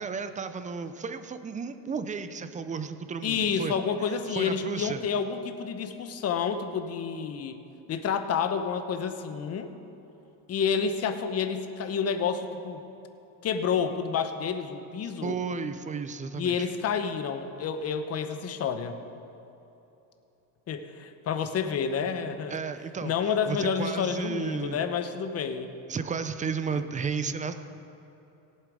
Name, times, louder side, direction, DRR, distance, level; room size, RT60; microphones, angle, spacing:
voice 1, 0.0-5.0 15.2-16.7 22.5-24.9 25.9-27.5, right 5 dB, 20° right, 10 dB, 0.4 m, -33 dB
voice 2, 3.2-7.6 7.9-9.7 10.5-12.8 13.4-15.4 16.4-19.0 20.7-22.5 23.0-25.7 26.7-26.8, left 6 dB, 35° left, 8 dB, 0.9 m, -29 dB
17.0 x 7.6 x 4.8 m, 3.0 s
cardioid pair, 120°, 41 cm